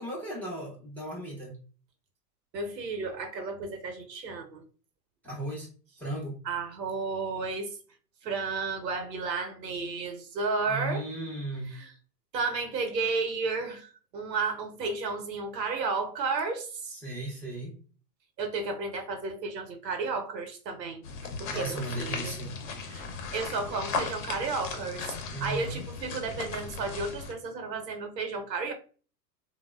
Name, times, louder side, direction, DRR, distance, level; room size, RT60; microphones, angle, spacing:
voice 1, 0.0-1.6 5.2-5.7 6.0-6.4 10.7-11.8 16.9-17.8 21.4-22.5 25.3-25.8, right 1 dB, 5° left, 0.4 m, -36 dB
voice 2, 2.5-4.6 6.4-7.8 8.2-11.1 11.7-11.9 12.3-16.9 18.4-21.0 21.4-22.3 22.9-23.1 23.3-28.7, right 4 dB, 85° right, 0.7 m, -32 dB
sound 1, 21.0-27.3, left 5 dB, 50° left, 0.7 m, -37 dB
3.0 x 2.0 x 2.2 m
hypercardioid pair, 100°, 49 cm